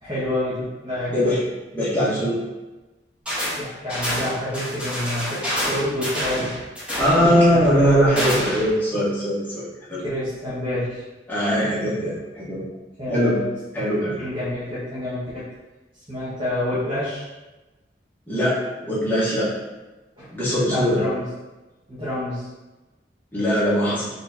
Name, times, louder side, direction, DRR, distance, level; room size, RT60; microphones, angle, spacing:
voice 1, 0.0-1.3 3.6-6.5 7.5-7.7 10.0-11.0 13.0-13.5 14.2-15.5 16.1-17.2 20.2-20.3 20.7-21.3 21.9-22.5, left 1 dB, 30° right, -11 dB, 1.0 m, -28 dB
voice 2, 1.7-2.4 7.0-10.0 11.3-12.6 13.1-13.4 13.7-14.2 18.3-18.6 18.8-19.5 20.3-21.0 23.3-24.1, equal, 10° left, -9 dB, 1.3 m, -21 dB
sound 1, 3.3-3.6 3.9-8.7, equal, 5° right, 1.1 m, -27 dB
4.3 x 3.4 x 2.7 m, 1.1 s
head